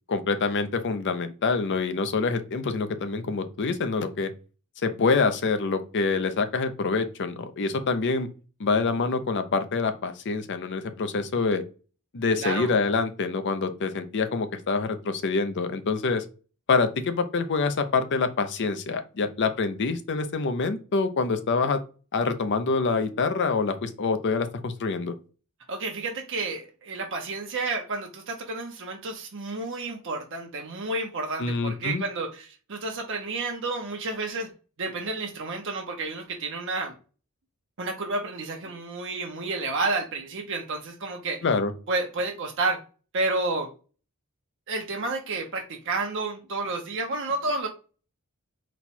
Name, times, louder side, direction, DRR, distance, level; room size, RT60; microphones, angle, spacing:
voice 1, 0.1-4.3 4.8-8.3 8.6-11.6 12.1-16.2 16.7-21.8 22.1-25.1 31.4-32.0 41.4-41.7, left 4 dB, 55° left, 9 dB, 0.5 m, -26 dB
voice 2, 12.4-12.7 25.7-34.5 34.8-37.0 37.8-41.4 41.9-42.8 43.1-43.7 44.7-47.7, right 3 dB, 60° right, 2 dB, 0.8 m, -30 dB
4.2 x 2.3 x 4.1 m, 0.35 s
head